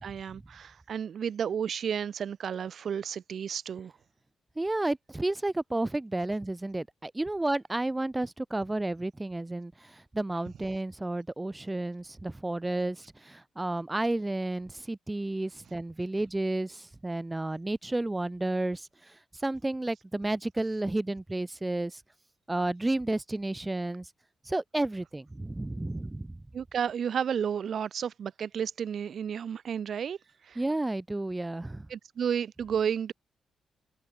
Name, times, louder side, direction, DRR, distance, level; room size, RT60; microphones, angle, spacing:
voice 1, 0.0-3.9 26.5-30.2 30.4-30.6 31.9-33.1, right 8 dB, 65° right, 0.5 m, -32 dB
voice 2, 4.6-22.0 22.5-24.1 24.4-26.4 30.6-31.9, right 2 dB, 15° right, 1.0 m, -32 dB
cardioid pair, 75°, 0 cm